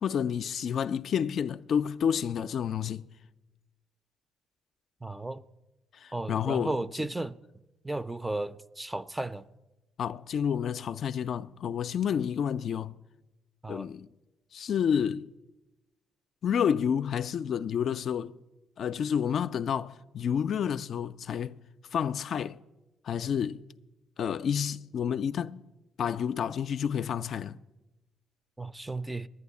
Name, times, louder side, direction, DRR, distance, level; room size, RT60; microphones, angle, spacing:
voice 1, 0.0-3.1 6.0-6.8 10.0-12.9 13.7-14.1 14.5-15.3 16.4-18.4 18.8-21.6 21.9-22.6 23.0-23.6 24.2-25.6 26.0-27.6, left 8 dB, 60° left, 0.3 m, -29 dB
voice 2, 5.0-5.4 6.1-7.3 7.8-9.5 13.6-13.9 28.6-29.3, right 2 dB, 10° right, 0.4 m, -34 dB
11.0 x 9.2 x 8.2 m
cardioid pair, 90°, 0 cm